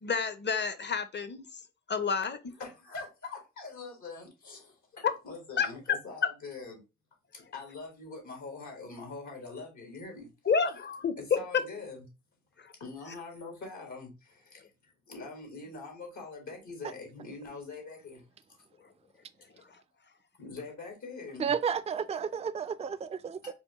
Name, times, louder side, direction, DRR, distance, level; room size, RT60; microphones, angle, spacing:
voice 1, 0.0-1.5 1.9-2.5 5.0-5.1 5.6-6.0 10.5-11.2 12.6-12.7, left 6 dB, 40° left, 0.6 m, -29 dB
voice 2, 2.6-6.8 7.3-10.3 10.8-10.9 11.2-12.1 12.8-18.2 20.4-21.5 22.1-22.2 23.4-23.5, left 3 dB, 75° left, 1.5 m, -43 dB
voice 3, 21.4-23.5, right 7 dB, 25° right, 0.3 m, -32 dB
4.7 x 2.2 x 3.0 m
cardioid pair, 40°, 29 cm